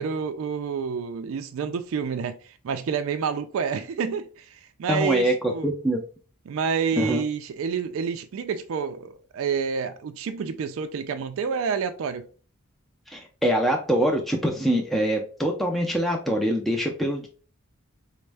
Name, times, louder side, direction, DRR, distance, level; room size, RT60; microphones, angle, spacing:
voice 1, 0.0-5.7 6.5-12.3, right 6 dB, 70° right, 0.3 m, -29 dB
voice 2, 4.9-5.3 5.6-6.0 7.0-7.2 13.1-17.3, equal, ahead, 0.4 m, -24 dB
4.2 x 2.1 x 3.3 m
head